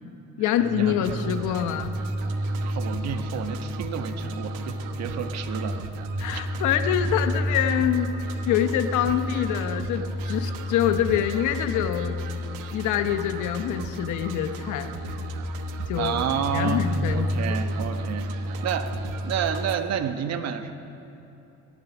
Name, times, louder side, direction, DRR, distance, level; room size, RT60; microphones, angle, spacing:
voice 1, 0.4-1.9 6.2-8.1 8.5-12.2 12.7-14.9 15.9-16.2 16.5-17.3 17.6-17.7, left 10 dB, 70° left, 8 dB, 1.0 m, -25 dB
sound 1, 0.6-19.7, left 1 dB, ahead, 0.5 m, -31 dB
sound 2, 1.0-19.8, right 7 dB, 75° right, 1.2 m, -40 dB
voice 2, 2.6-5.8 6.3-6.4 16.0-19.0 19.2-20.7, right 8 dB, 55° right, 8 dB, 1.2 m, -30 dB
18.0 x 13.0 x 6.1 m, 2.9 s
cardioid pair, 115°, 31 cm